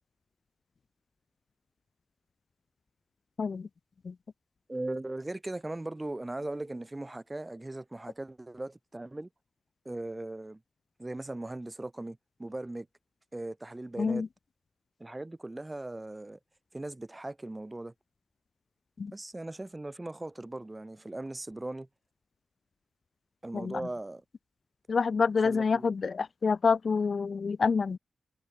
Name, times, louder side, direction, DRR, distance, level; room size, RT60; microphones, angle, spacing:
voice 1, 4.7-9.3 9.9-10.6 11.0-12.9 13.3-14.3 15.0-16.4 16.7-17.9 19.1-21.9 23.4-24.2 25.4-25.9, right 2 dB, 25° right, 6.7 m, -39 dB
voice 2, 24.9-28.0, left 5 dB, 60° left, 0.6 m, -27 dB
cardioid pair, 55°, 0 cm